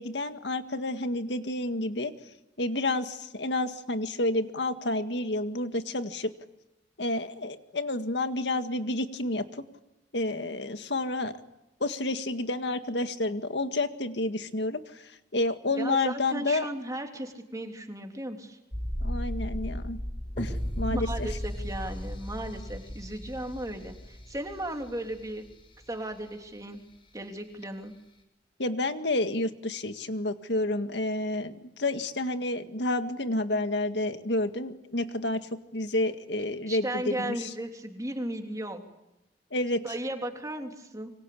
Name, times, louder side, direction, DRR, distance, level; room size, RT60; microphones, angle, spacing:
voice 1, 0.0-2.1 2.6-6.3 7.0-9.6 10.1-11.3 11.8-16.7 19.0-20.0 20.4-21.3 28.6-35.4 35.7-37.5 39.5-39.8, left 2 dB, 75° left, 8 dB, 1.9 m, -30 dB
voice 2, 15.7-18.6 20.9-25.5 25.9-26.8 27.1-27.9 36.7-38.8 39.8-41.1, right 1 dB, 20° right, 3 dB, 3.3 m, -35 dB
sound 1, 18.7-25.5 25.8-25.9, equal, 30° left, 5.9 m, -35 dB
27.0 x 24.5 x 8.6 m, 0.93 s
head